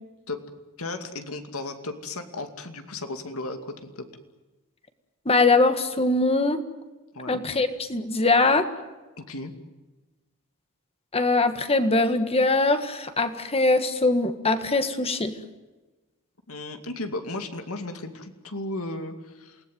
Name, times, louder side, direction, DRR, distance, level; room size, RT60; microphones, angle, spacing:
voice 1, 0.8-4.1 7.1-7.4 9.3-9.5 16.5-19.6, left 2 dB, 70° left, 7 dB, 2.5 m, -35 dB
voice 2, 5.3-6.6 7.3-8.7 11.1-15.3, left 3 dB, 25° left, 9 dB, 1.7 m, -22 dB
28.5 x 19.0 x 9.4 m, 1.2 s
head